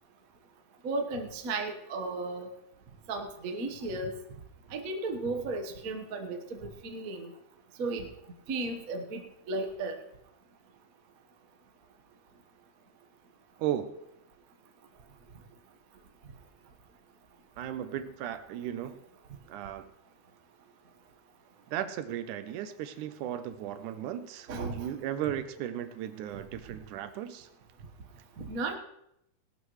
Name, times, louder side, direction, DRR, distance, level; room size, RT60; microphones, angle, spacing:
voice 1, 0.8-2.5 3.1-4.1 4.7-7.3 7.8-8.1 8.5-9.2 9.5-10.0 24.5-24.9 28.4-28.8, right 3 dB, 65° right, 4 dB, 0.8 m, -34 dB
voice 2, 13.6-13.9 17.6-19.0 19.5-19.9 21.7-27.5, right 11 dB, 80° right, 12 dB, 2.1 m, -36 dB
18.0 x 12.0 x 3.2 m, 0.79 s
omnidirectional pair, 3.7 m